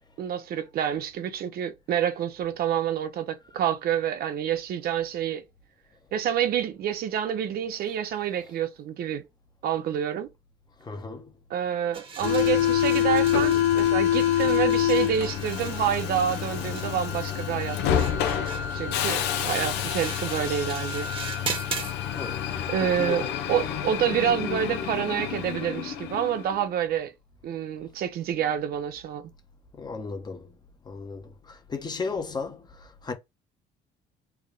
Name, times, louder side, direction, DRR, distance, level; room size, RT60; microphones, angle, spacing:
voice 1, 0.2-5.4 6.1-9.2 9.6-10.3 11.5-17.8 18.7-21.1 22.7-27.1 27.4-29.3, right 9 dB, 65° right, 0.6 m, -28 dB
voice 2, 10.8-11.3 22.1-22.5 22.8-23.2 29.8-30.5 30.9-32.6 33.0-33.1, left 4 dB, 25° left, 0.9 m, -34 dB
sound 1, 11.9-21.9, right 4 dB, 30° right, 1.2 m, -39 dB
Subway metro underground, 12.2-26.5, left 10 dB, 90° left, 0.7 m, -27 dB
3.5 x 2.2 x 3.7 m
cardioid pair, 110°, 17 cm